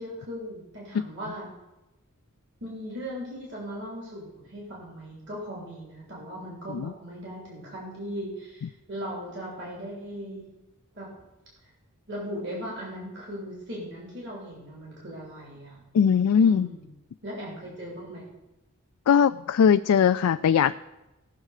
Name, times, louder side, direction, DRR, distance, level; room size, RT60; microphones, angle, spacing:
voice 1, 0.0-1.5 2.6-10.5 10.9-11.1 12.1-15.8 16.4-16.9 17.2-18.2, equal, 55° right, -4 dB, 2.9 m, -38 dB
voice 2, 15.9-16.7 19.1-20.7, left 7 dB, 85° left, 10 dB, 0.3 m, -20 dB
17.5 x 6.5 x 4.9 m, 1.0 s
head